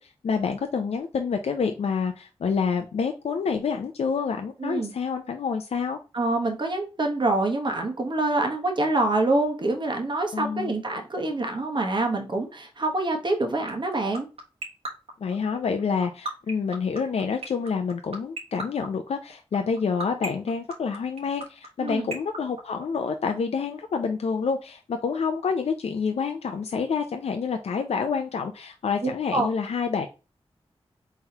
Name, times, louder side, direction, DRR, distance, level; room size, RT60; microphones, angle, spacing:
voice 1, 0.0-6.0 10.3-10.8 15.2-30.1, left 5 dB, 75° left, 5 dB, 0.5 m, -28 dB
voice 2, 4.6-4.9 6.1-14.3 21.8-22.1 29.0-29.5, right 2 dB, 45° right, 3 dB, 1.1 m, -26 dB
sound 1, 13.7-23.3, right 3 dB, 70° right, 1.3 m, -33 dB
4.1 x 3.9 x 2.8 m, 0.31 s
cardioid pair, 50°, 11 cm